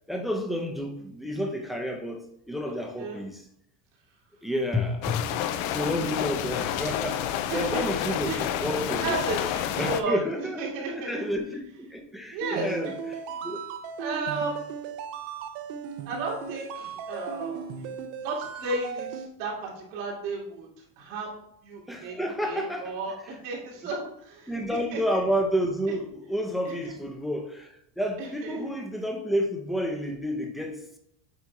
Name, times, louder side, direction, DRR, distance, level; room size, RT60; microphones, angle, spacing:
voice 1, 0.1-3.4 4.4-5.3 5.7-9.2 9.8-13.7 21.9-23.0 24.5-31.0, equal, ahead, 0.7 m, -30 dB
voice 2, 2.7-3.2 6.2-6.3 7.5-8.4 9.0-11.3 12.3-12.9 14.0-14.8 16.0-17.9 18.2-20.7 21.0-25.0 26.8-26.9 28.2-28.7, right 3 dB, 90° right, 2.5 m, -34 dB
sound 1, 5.0-10.0, left 11 dB, 75° left, 0.7 m, -29 dB
sound 2, 12.4-19.3, right 6 dB, 65° right, 0.8 m, -37 dB
8.3 x 2.9 x 4.8 m
cardioid pair, 130°, 47 cm